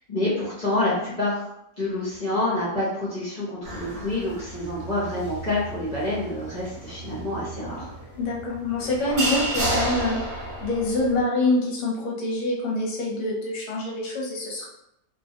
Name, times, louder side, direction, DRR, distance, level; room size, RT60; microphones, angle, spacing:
voice 1, 0.1-1.5 1.8-7.9, left 2 dB, 35° left, -9 dB, 0.9 m, -27 dB
sound 1, 3.6-11.2, right 2 dB, 50° right, 1.1 m, -32 dB
voice 2, 8.2-14.7, left 2 dB, 65° left, -3 dB, 1.1 m, -26 dB
2.6 x 2.2 x 2.8 m, 0.79 s
omnidirectional pair, 1.6 m